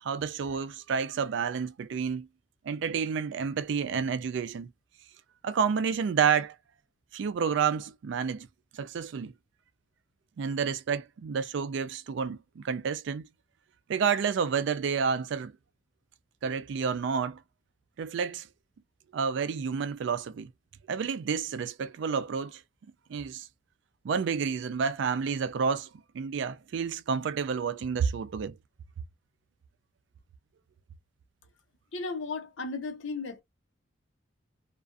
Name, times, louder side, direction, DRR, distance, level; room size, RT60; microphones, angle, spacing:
voice 1, 0.0-2.3 2.7-4.7 5.4-6.6 7.1-8.5 8.7-9.3 10.4-13.3 13.9-15.5 16.4-17.4 18.0-18.5 19.1-20.5 20.9-22.6 23.1-23.5 24.0-25.9 26.1-28.5, right 6 dB, 65° right, 0.3 m, -30 dB
voice 2, 31.9-33.4, left 3 dB, 70° left, 0.7 m, -35 dB
2.4 x 2.3 x 2.4 m
head